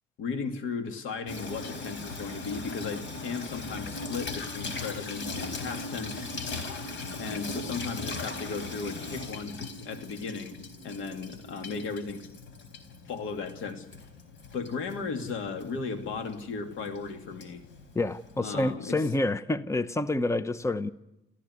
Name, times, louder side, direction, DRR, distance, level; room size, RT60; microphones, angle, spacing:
voice 1, 0.2-6.3 7.2-10.6 10.8-12.3 13.1-13.9 14.5-17.6 18.4-19.0, left 4 dB, 85° left, 6 dB, 2.6 m, -36 dB
Water tap faucet / Sink (filling or washing), 1.3-18.7, left 3 dB, 70° left, 4.1 m, -39 dB
voice 2, 17.9-20.9, left 2 dB, 15° left, 14 dB, 0.9 m, -28 dB
28.5 x 15.0 x 9.7 m, 0.94 s
cardioid pair, 90°, 20 cm